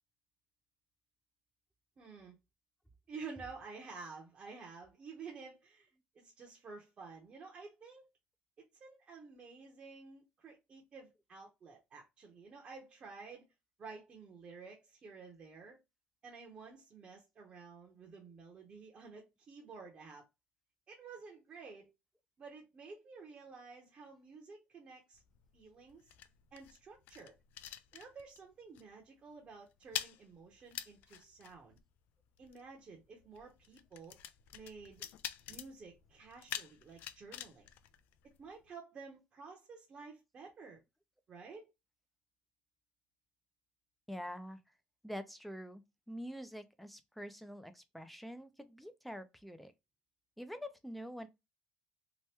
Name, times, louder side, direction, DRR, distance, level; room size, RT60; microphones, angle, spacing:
voice 1, 2.0-2.4 3.1-5.9 6.1-8.1 8.6-13.5 13.8-15.8 16.2-20.3 20.9-21.9 22.4-25.2 25.5-26.1 26.5-27.4 27.9-31.8 32.4-34.2 34.5-35.0 35.5-37.7 38.2-40.8 41.3-41.7, right 4 dB, 35° right, 0.8 m, -51 dB
sound 1, 25.1-28.5 28.8-29.0 29.3-38.7, left 11 dB, 70° left, 0.3 m, -47 dB
voice 2, 44.1-44.6 45.0-49.7 50.4-51.3, equal, ahead, 0.4 m, -46 dB
2.9 x 2.1 x 3.3 m
cardioid pair, 145°, 3 cm